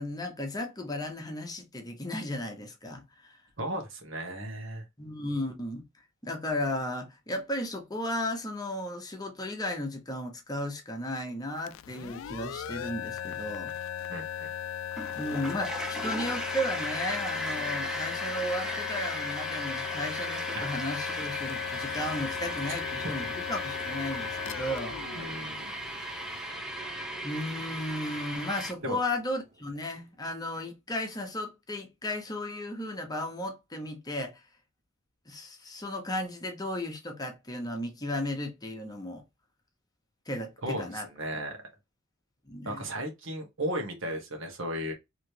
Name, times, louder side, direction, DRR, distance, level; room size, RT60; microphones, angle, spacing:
voice 1, 0.0-3.4 5.0-5.8 6.2-13.7 15.1-25.0 27.2-34.4 35.3-39.2 40.3-41.1 42.5-42.8, left 1 dB, 20° left, 0.9 m, -35 dB
voice 2, 3.6-4.8 14.1-14.5 20.5-20.7 25.1-25.6 28.8-29.0 40.6-40.9 41.2-41.6 42.6-44.9, equal, 65° right, 1.2 m, -35 dB
sound 1, 11.6-26.2, left 10 dB, 65° left, 0.3 m, -37 dB
sound 2, 14.9-28.7, equal, 5° right, 0.5 m, -37 dB
sound 3, 21.1-30.1, right 2 dB, 35° right, 0.8 m, -49 dB
3.2 x 3.0 x 2.8 m
head